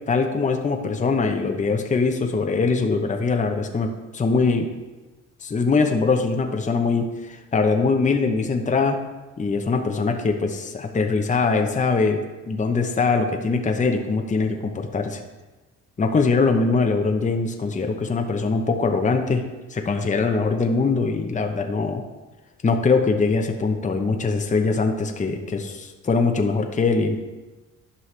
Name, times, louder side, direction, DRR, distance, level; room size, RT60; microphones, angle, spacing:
voice 1, 0.1-4.7 5.4-9.0 9.4-12.2 12.5-15.2 16.0-19.4 19.7-22.0 22.6-27.2, left 4 dB, 25° left, 4 dB, 0.8 m, -22 dB
11.0 x 5.5 x 3.3 m, 1.2 s
cardioid pair, 90°, 30 cm